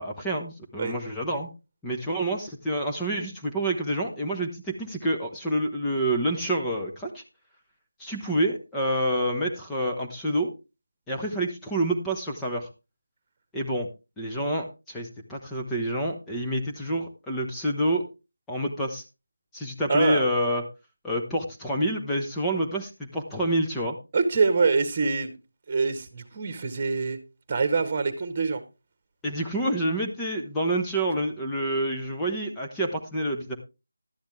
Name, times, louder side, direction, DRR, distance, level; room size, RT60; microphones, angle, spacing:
voice 1, 0.0-1.5 1.8-7.2 8.0-10.5 11.1-12.7 13.5-13.9 14.2-18.0 18.5-19.0 19.5-20.6 21.0-24.0 29.2-33.6, right 1 dB, 5° left, -2 dB, 1.2 m, -28 dB
voice 2, 19.9-20.2 24.1-25.3 25.7-27.2 27.5-28.6, right 4 dB, 25° right, 10 dB, 1.7 m, -25 dB
12.0 x 10.0 x 3.4 m, 0.28 s
figure-of-eight pair, 160°, 0 cm